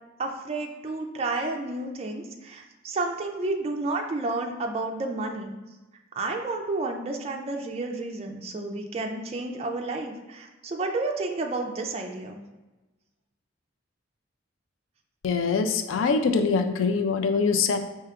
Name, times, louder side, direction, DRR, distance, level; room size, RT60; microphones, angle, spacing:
voice 1, 0.2-5.5 6.2-12.4, right 2 dB, 30° right, 2 dB, 0.3 m, -31 dB
voice 2, 15.2-17.8, left 5 dB, 85° left, 7 dB, 0.3 m, -23 dB
4.5 x 2.8 x 2.3 m, 1.1 s
head